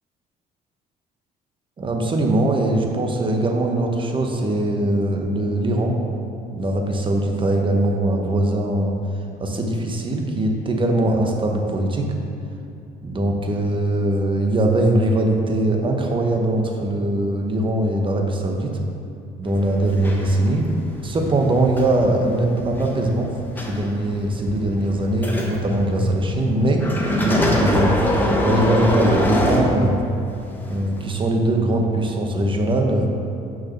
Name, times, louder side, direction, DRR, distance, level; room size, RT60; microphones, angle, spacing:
voice 1, 1.8-5.9 6.5-8.9 9.4-12.1 13.0-18.8 19.4-20.7 21.0-23.3 23.6-26.9 27.1-30.0 30.7-33.1, right 1 dB, 30° right, 2 dB, 1.1 m, -21 dB
sound 1, 19.4-30.3 31.0-31.1, left 1 dB, 10° left, 1.1 m, -24 dB
6.5 x 6.1 x 5.8 m, 2.6 s
cardioid pair, 110°, 17 cm